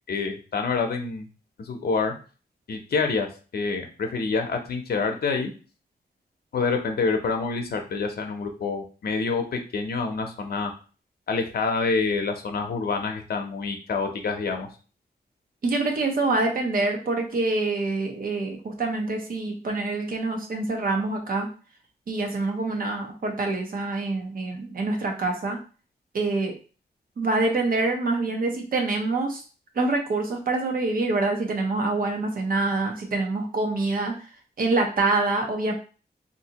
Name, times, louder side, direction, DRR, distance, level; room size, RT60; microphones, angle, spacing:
voice 1, 0.1-1.3 1.6-2.1 2.7-3.3 3.5-5.5 6.5-10.7 11.3-14.7, left 4 dB, 65° left, 3 dB, 0.6 m, -27 dB
voice 2, 15.6-21.5 22.1-25.6 26.1-26.6 27.2-29.4 29.8-34.1 34.6-35.7, right 3 dB, 55° right, 3 dB, 0.7 m, -26 dB
3.4 x 2.6 x 2.8 m, 0.36 s
wide cardioid pair, 165°, 18 cm